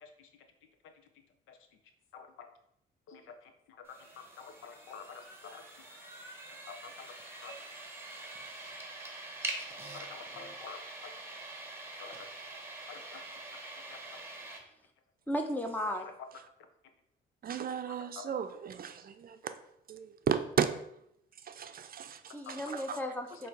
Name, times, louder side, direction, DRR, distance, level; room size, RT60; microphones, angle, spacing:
voice 1, 2.1-2.5 3.1-3.4 4.2-5.6 6.7-7.1 7.4-7.5 9.9-10.8 12.0-12.3 12.9-13.2 13.9-14.0 18.2-18.3 22.5-22.8, left 6 dB, 85° left, 0.8 m, -48 dB
sound 1, 3.9-14.6, right 2 dB, 10° right, 1.3 m, -44 dB
voice 2, 15.3-16.1 22.3-23.5, equal, 10° left, 1.0 m, -35 dB
voice 3, 17.4-19.6 19.9-20.7 21.4-23.0, right 8 dB, 50° right, 0.5 m, -35 dB
7.2 x 2.8 x 4.6 m
cardioid pair, 90°, 20 cm